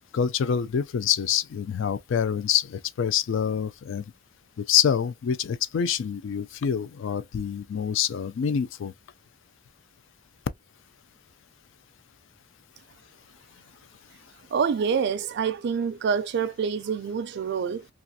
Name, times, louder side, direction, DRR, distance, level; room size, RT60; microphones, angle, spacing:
voice 1, 0.1-4.1 4.6-8.9, left 8 dB, 70° left, 0.4 m, -26 dB
voice 2, 14.5-17.9, right 6 dB, 60° right, 0.4 m, -26 dB
2.4 x 2.4 x 2.6 m
head